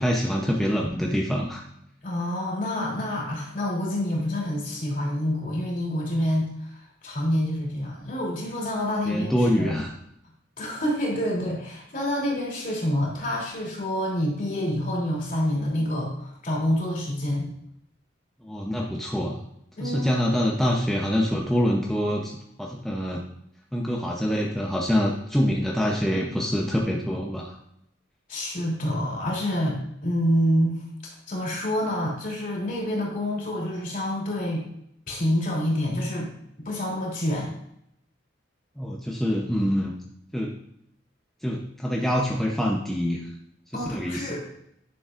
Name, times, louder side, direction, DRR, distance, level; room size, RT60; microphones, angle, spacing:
voice 1, 0.0-1.6 9.1-9.9 18.4-19.3 19.8-22.3 22.6-23.2 23.7-27.6 38.8-40.0 40.3-40.5 41.4-43.2 43.7-44.4, equal, ahead, -2 dB, 0.7 m, -25 dB
voice 2, 2.0-9.7 10.6-17.5 19.8-20.2 28.3-30.8 31.3-34.6 35.1-36.3 36.6-37.5 43.7-44.5, equal, 45° left, -4 dB, 3.0 m, -27 dB
10.5 x 6.8 x 2.5 m, 0.75 s
head